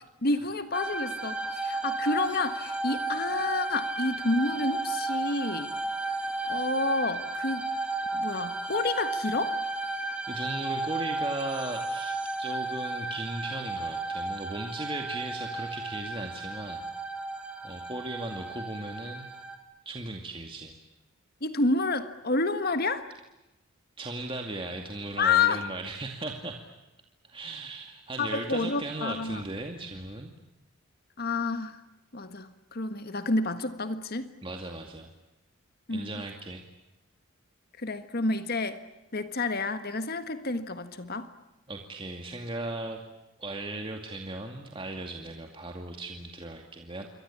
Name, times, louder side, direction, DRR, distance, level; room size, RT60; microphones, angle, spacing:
voice 1, 0.2-5.7 6.5-7.7 8.1-9.6 21.4-23.1 25.2-25.6 28.2-29.4 31.2-31.8 32.1-34.3 35.9-36.1 37.8-38.8 39.1-41.3, left 3 dB, 45° left, 10 dB, 1.6 m, -29 dB
sound 1, 0.7-19.6, right 2 dB, 5° right, 3.3 m, -33 dB
voice 2, 10.3-16.9 17.6-19.3 19.9-20.8 24.0-26.6 27.2-30.3 34.4-35.1 35.9-36.6 41.7-43.0 43.4-47.1, right 2 dB, 25° right, 3 dB, 2.4 m, -37 dB
28.0 x 24.0 x 8.6 m, 0.97 s
head